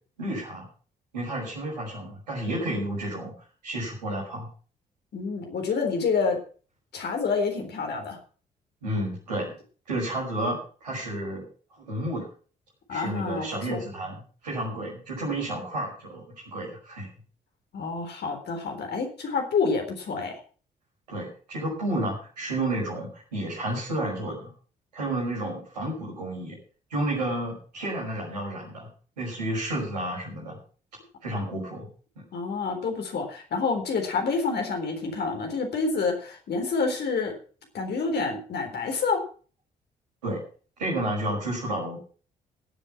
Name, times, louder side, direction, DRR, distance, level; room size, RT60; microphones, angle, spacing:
voice 1, 0.2-0.7 1.1-3.3 3.6-4.5 8.8-9.5 9.9-11.5 11.8-12.3 12.9-14.2 14.4-17.1 21.1-24.5 24.9-26.6 26.9-28.9 29.2-30.5 31.2-31.9 32.2-32.3 40.2-40.4 40.8-42.0, right 1 dB, 85° right, -3 dB, 5.7 m, -31 dB
voice 2, 5.1-6.4 6.9-8.2 12.9-13.8 17.7-20.3 32.3-37.3 37.7-39.2, left 4 dB, 55° left, 3 dB, 3.8 m, -28 dB
16.5 x 7.6 x 5.8 m, 0.40 s
figure-of-eight pair, 40°, 21 cm